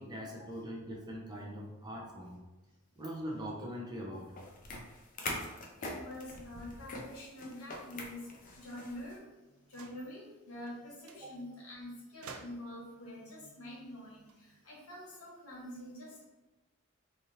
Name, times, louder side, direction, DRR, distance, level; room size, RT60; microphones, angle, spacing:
voice 1, 0.0-2.4 3.0-4.3 11.2-11.3, equal, 20° right, -3 dB, 0.6 m, -42 dB
sound 1, 4.3-9.2, left 2 dB, 40° left, 0.4 m, -43 dB
voice 2, 5.8-8.2 8.6-9.2 9.7-16.2, left 1 dB, 85° left, -5 dB, 1.2 m, -46 dB
sound 2, 9.7-10.1 10.7-10.8 11.1-11.3 12.2-12.9 14.1-15.2, right 5 dB, 70° right, 0.3 m, -52 dB
3.3 x 2.6 x 2.7 m, 1.1 s
head